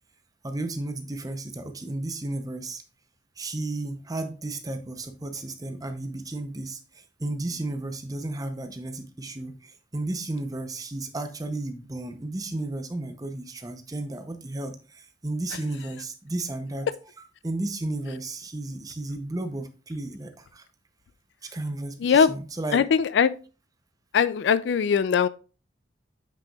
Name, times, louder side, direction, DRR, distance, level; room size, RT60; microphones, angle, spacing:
voice 1, 0.4-2.8 3.4-16.9 17.2-20.6 21.4-22.8, right 2 dB, 20° right, 0.7 m, -33 dB
voice 2, 22.0-22.3 22.7-23.3 24.1-25.3, left 6 dB, 65° left, 0.3 m, -20 dB
7.7 x 5.9 x 2.3 m
head